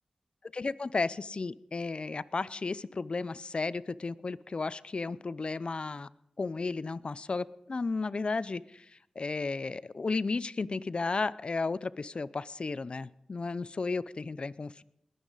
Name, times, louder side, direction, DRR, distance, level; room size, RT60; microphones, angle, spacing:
voice 1, 0.5-6.1 6.4-8.8 9.2-14.8, left 3 dB, 50° left, 18 dB, 0.5 m, -33 dB
20.5 x 10.0 x 4.0 m, 0.78 s
cardioid pair, 45°, 2 cm